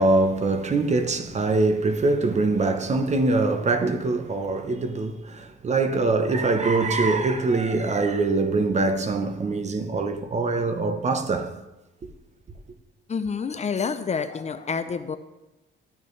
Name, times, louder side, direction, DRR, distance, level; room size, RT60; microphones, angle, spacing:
voice 1, 0.0-11.5, right 3 dB, 35° right, 0.9 m, -23 dB
voice 2, 13.1-15.2, left 5 dB, 35° left, 0.6 m, -28 dB
12.5 x 6.7 x 3.3 m
cardioid pair, 90°, 20 cm